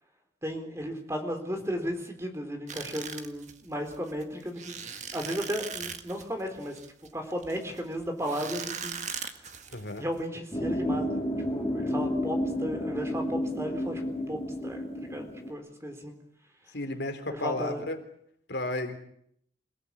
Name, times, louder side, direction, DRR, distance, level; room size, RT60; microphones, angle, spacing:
voice 1, 0.4-4.8 5.1-6.8 7.1-9.0 10.0-14.0 14.3-14.8 15.1-16.2 17.3-17.8, equal, 15° right, 5 dB, 3.9 m, -34 dB
sound 1, 2.7-10.2, right 7 dB, 40° right, 1.7 m, -40 dB
voice 2, 9.7-10.0 16.7-18.0 18.5-19.0, left 2 dB, 70° left, 6 dB, 3.6 m, -33 dB
sound 2, 10.5-15.5, left 1 dB, 20° left, 6.7 m, -31 dB
27.5 x 18.0 x 8.7 m, 0.70 s
head